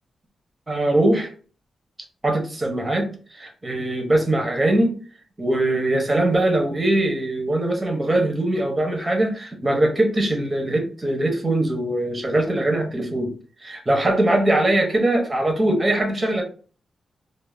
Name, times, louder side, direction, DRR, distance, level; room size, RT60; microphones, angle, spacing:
voice 1, 0.7-1.3 2.2-5.0 5.4-13.3 13.6-16.4, right 1 dB, 15° right, 3 dB, 0.6 m, -21 dB
2.3 x 2.0 x 3.0 m, 0.39 s
wide cardioid pair, 165°, 0 cm